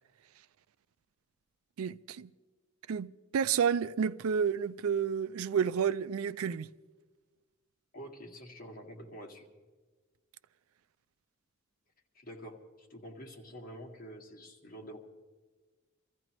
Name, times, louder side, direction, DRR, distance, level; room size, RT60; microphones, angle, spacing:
voice 1, 1.8-2.3 2.9-6.7, right 7 dB, 80° right, 0.4 m, -30 dB
voice 2, 7.9-9.5 12.1-15.0, equal, 45° left, 2.0 m, -47 dB
25.5 x 15.0 x 3.1 m
head